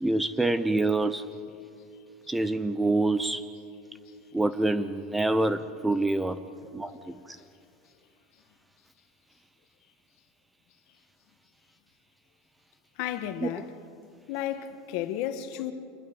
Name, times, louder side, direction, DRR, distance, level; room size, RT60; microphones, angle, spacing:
voice 1, 0.0-1.2 2.3-3.4 4.3-6.4 6.7-7.0 13.4-13.5, right 2 dB, 5° right, 0.6 m, -26 dB
voice 2, 13.0-13.7 14.3-15.7, left 11 dB, 55° left, 1.5 m, -32 dB
28.0 x 21.0 x 5.4 m
supercardioid pair, 150°, 0 cm